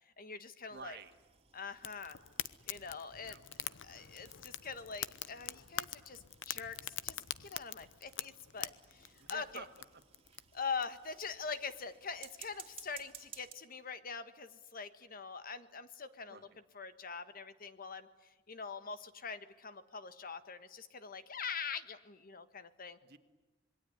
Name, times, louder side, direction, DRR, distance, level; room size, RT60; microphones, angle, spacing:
voice 1, 0.2-1.0 1.5-2.2 2.7-3.3 3.8-9.6 10.5-16.4 16.7-23.0, left 5 dB, 50° left, 11 dB, 1.5 m, -44 dB
sound 1, 0.7-13.5, right 8 dB, 30° right, 2.4 m, -59 dB
voice 2, 0.7-1.1 3.2-3.4 9.2-10.0 16.2-16.5 23.0-23.2, right 5 dB, 60° right, 9 dB, 1.8 m, -51 dB
Fire, 1.8-10.8, left 11 dB, 75° left, 0.8 m, -44 dB
27.0 x 22.5 x 9.6 m, 1.1 s
head